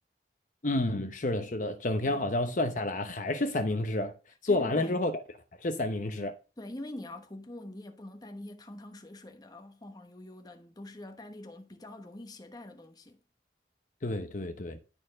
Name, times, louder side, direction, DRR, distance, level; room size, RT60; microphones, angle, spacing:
voice 1, 0.6-4.1 4.4-5.2 5.6-6.3 14.0-14.8, left 2 dB, 45° left, 0.8 m, -30 dB
voice 2, 4.5-5.0 6.6-13.2, left 1 dB, 20° left, 1.1 m, -44 dB
11.5 x 4.4 x 6.2 m
head